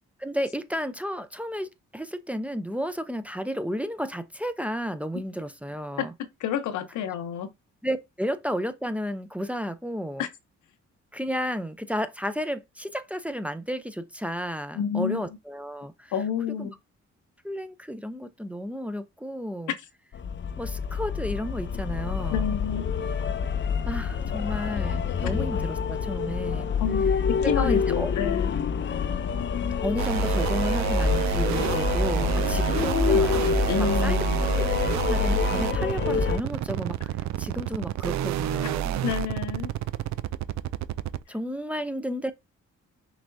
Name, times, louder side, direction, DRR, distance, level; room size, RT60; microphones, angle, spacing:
voice 1, 0.2-6.1 7.8-10.3 11.1-16.1 16.6-16.7 17.4-19.7 20.6-22.6 23.8-26.7 27.4-28.1 29.8-34.5 35.0-39.0 41.3-42.3, equal, 5° right, 0.6 m, -32 dB
voice 2, 6.4-7.5 10.2-10.3 14.7-15.3 16.1-16.7 22.3-22.8 26.8-27.1 27.4-28.6 33.7-34.4 39.0-39.7, left 8 dB, 85° left, 0.9 m, -29 dB
sound 1, 20.1-36.4, left 6 dB, 40° left, 0.6 m, -27 dB
sound 2, 30.0-41.2, right 14 dB, 70° right, 0.4 m, -29 dB
5.9 x 3.3 x 2.7 m
cardioid pair, 70°, 29 cm